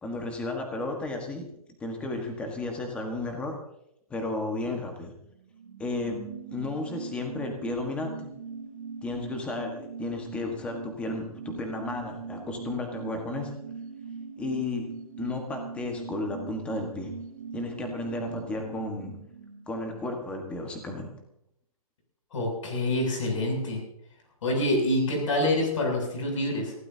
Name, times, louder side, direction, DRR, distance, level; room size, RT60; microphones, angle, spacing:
voice 1, 0.0-1.4 1.8-3.5 4.1-5.1 5.8-6.2 6.5-8.3 9.0-13.5 14.4-14.9 15.2-17.1 17.5-19.1 19.7-21.1, left 2 dB, 5° left, 3 dB, 1.4 m, -33 dB
sound 1, 5.4-20.6 20.9-21.0, right 5 dB, 60° right, 2.9 m, -41 dB
voice 2, 22.3-23.8 24.4-26.7, left 1 dB, 60° left, 1 dB, 7.5 m, -26 dB
24.0 x 16.0 x 2.8 m, 0.78 s
hypercardioid pair, 175°, 19 cm